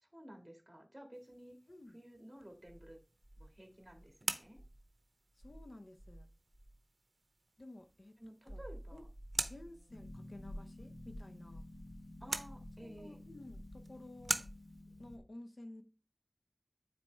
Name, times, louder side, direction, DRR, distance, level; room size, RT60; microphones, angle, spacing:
voice 1, 0.0-1.6 1.9-3.0 3.4-4.6 8.2-9.1 9.6-9.8 12.2-13.2, equal, 20° right, 1.9 m, -54 dB
sound 1, 1.1-14.8, right 2 dB, 85° right, 0.5 m, -46 dB
Insect, 2.6-4.9 5.4-6.8 8.5-10.1, right 1 dB, 30° left, 3.5 m, -53 dB
voice 2, 5.4-6.3 7.6-8.2 8.4-8.6 8.9-9.0 9.5-11.6 12.8-14.4 15.0-15.8, left 1 dB, 70° left, 0.7 m, -53 dB
Harp, 9.9-15.2, left 1 dB, 90° left, 2.2 m, -50 dB
9.4 x 4.1 x 3.3 m
wide cardioid pair, 50°, 0 cm